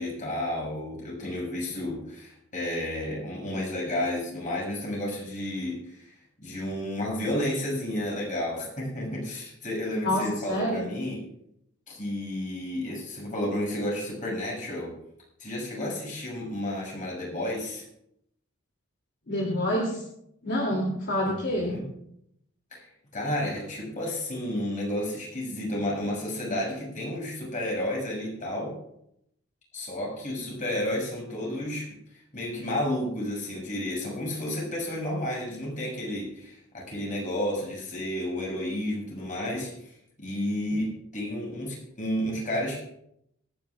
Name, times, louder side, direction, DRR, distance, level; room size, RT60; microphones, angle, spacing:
voice 1, 0.0-6.1 6.4-11.2 11.9-14.9 15.4-17.8 21.2-21.8 22.7-28.8 29.7-31.9 32.3-42.8, left 1 dB, 40° left, -3 dB, 6.7 m, -31 dB
voice 2, 10.5-10.9 19.3-20.0 20.4-21.8, left 1 dB, 60° left, -2 dB, 2.9 m, -27 dB
26.5 x 10.5 x 2.5 m, 0.77 s
head